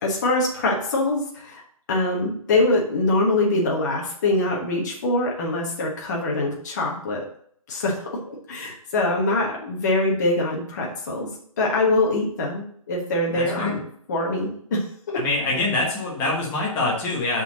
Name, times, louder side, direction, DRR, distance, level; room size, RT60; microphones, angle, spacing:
voice 1, 0.0-1.6 1.9-7.2 7.7-11.3 11.6-13.8 14.1-15.2, left 2 dB, 30° left, -2 dB, 1.4 m, -24 dB
voice 2, 13.3-13.8 15.1-17.4, left 2 dB, 10° left, -4 dB, 1.2 m, -25 dB
6.7 x 4.4 x 6.2 m, 0.63 s
hypercardioid pair, 175°, 18 cm